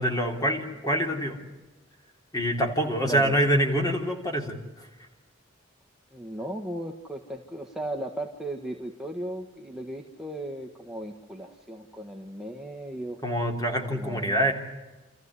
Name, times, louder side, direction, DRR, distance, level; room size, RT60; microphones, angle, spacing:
voice 1, 0.0-1.5 2.3-4.9 13.2-14.5, equal, 20° left, 3 dB, 3.4 m, -26 dB
voice 2, 3.0-3.4 6.1-13.2 13.9-14.5, right 1 dB, 5° right, 1 dB, 1.6 m, -36 dB
29.0 x 14.5 x 9.8 m, 1.2 s
head